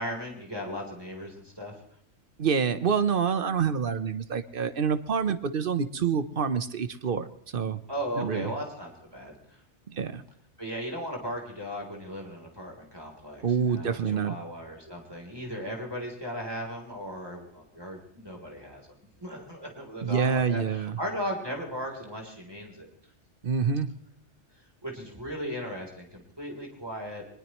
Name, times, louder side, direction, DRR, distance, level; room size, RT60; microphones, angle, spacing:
voice 1, 0.0-1.7 7.9-9.6 10.6-18.9 19.2-22.9 24.8-27.3, equal, 20° right, 0 dB, 3.5 m, -37 dB
voice 2, 2.4-7.3 7.5-7.8 8.2-8.5 9.9-10.2 13.4-14.4 20.0-21.0 23.4-23.9, right 6 dB, 50° right, 12 dB, 1.0 m, -27 dB
23.0 x 20.5 x 3.1 m, 0.69 s
omnidirectional pair, 1.2 m